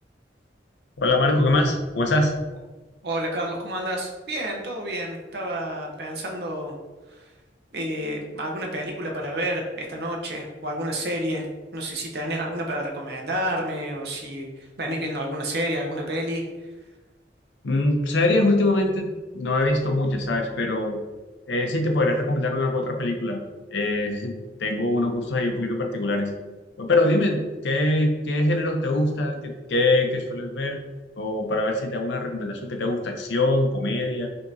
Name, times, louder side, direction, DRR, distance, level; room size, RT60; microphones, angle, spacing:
voice 1, 1.0-2.3 17.6-21.0 21.5-23.4 23.7-24.3 24.6-26.3 26.8-30.8 31.2-34.3, left 2 dB, 85° left, 3 dB, 0.6 m, -23 dB
voice 2, 3.0-6.7 7.7-11.4 11.7-16.4, right 1 dB, 65° right, 0 dB, 0.7 m, -29 dB
5.1 x 2.8 x 2.6 m, 1.2 s
head